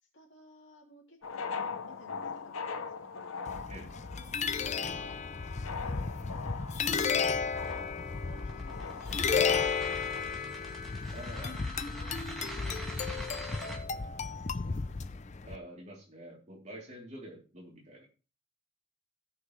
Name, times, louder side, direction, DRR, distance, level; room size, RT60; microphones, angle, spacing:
voice 1, 0.0-3.5 3.9-5.1 5.7-7.6 8.2-10.4 11.3-13.8 14.3-15.0, left 1 dB, 60° left, -1 dB, 3.2 m, -57 dB
sound 1, 1.2-10.2, left 5 dB, 90° left, 0.8 m, -41 dB
sound 2, 3.5-15.6, left 5 dB, 35° left, 0.5 m, -33 dB
sound 3, 7.2-13.8, equal, ahead, 2.0 m, -45 dB
voice 2, 11.1-11.6 12.8-14.0 14.7-14.8 15.4-18.1, right 1 dB, 35° right, -2 dB, 3.1 m, -48 dB
17.0 x 6.1 x 3.2 m, 0.35 s
head